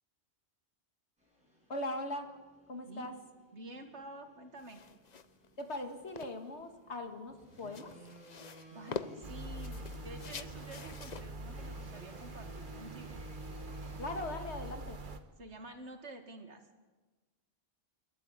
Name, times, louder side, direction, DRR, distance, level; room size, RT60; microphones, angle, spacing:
sound 1, 1.2-14.3, equal, 5° right, 7.3 m, -56 dB
voice 1, 1.7-2.3 2.7-3.1 5.6-7.9 8.9-9.0 14.0-15.0, left 1 dB, 75° left, 6 dB, 2.3 m, -40 dB
voice 2, 3.5-4.8 8.7-13.2 15.4-16.8, right 1 dB, 80° right, 6 dB, 2.4 m, -49 dB
sound 2, 4.6-13.1, left 6 dB, 45° left, 0.8 m, -47 dB
sound 3, 9.2-15.2, right 2 dB, 45° right, 1.4 m, -44 dB
28.0 x 13.0 x 8.8 m, 1.3 s
omnidirectional pair, 1.1 m